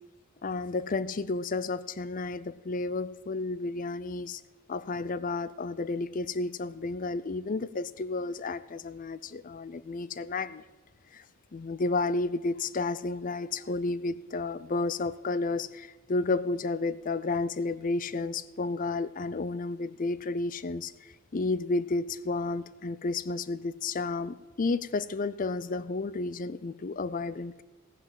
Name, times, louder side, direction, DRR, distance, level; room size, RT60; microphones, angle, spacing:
voice 1, 0.4-4.4 4.7-10.6 11.1-11.2 11.5-27.6, left 3 dB, 40° left, 0.5 m, -32 dB
17.0 x 5.8 x 7.4 m
head